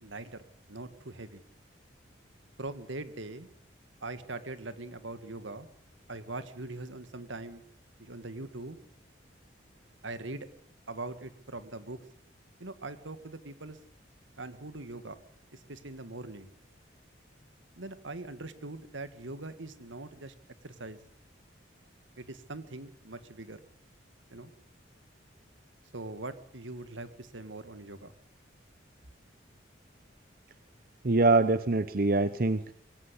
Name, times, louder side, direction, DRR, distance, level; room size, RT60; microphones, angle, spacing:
voice 1, 0.0-1.4 2.6-3.5 4.0-5.7 6.1-7.6 8.0-8.8 10.0-10.5 10.9-12.0 12.6-13.8 14.4-15.2 15.5-16.5 17.8-20.3 20.6-21.0 22.2-23.6 24.3-24.5 25.9-28.1, right 2 dB, 80° right, 11 dB, 2.0 m, -42 dB
voice 2, 31.0-32.7, right 3 dB, 50° right, 12 dB, 0.8 m, -24 dB
23.5 x 17.0 x 8.2 m, 0.66 s
head